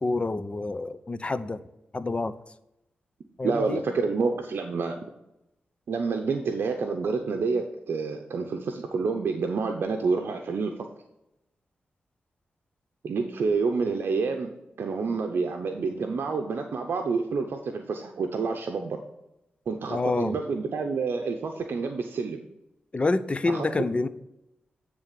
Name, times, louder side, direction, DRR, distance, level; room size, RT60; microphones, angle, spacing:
voice 1, 0.0-1.6 1.9-2.3 3.4-3.8 19.9-20.4 22.9-24.1, left 3 dB, 30° left, 13 dB, 0.5 m, -27 dB
voice 2, 3.4-5.0 5.9-10.7 13.0-19.0 19.7-22.4 23.5-23.6, right 4 dB, 75° right, 4 dB, 0.7 m, -28 dB
8.9 x 3.5 x 6.6 m, 0.88 s
cardioid pair, 65°, 4 cm